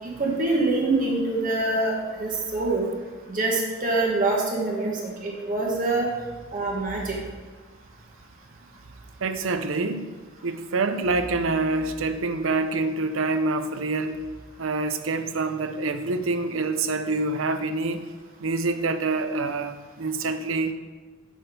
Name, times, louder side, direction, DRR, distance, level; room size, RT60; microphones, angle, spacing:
voice 1, 0.0-1.9 2.2-2.9 3.3-4.9 5.2-6.1 6.5-7.2, right 2 dB, 40° right, -3 dB, 1.5 m, -25 dB
voice 2, 9.2-10.1 10.4-14.2 14.6-18.0 18.4-20.7, right 3 dB, 80° right, 8 dB, 0.6 m, -26 dB
6.6 x 6.4 x 5.1 m, 1.3 s
head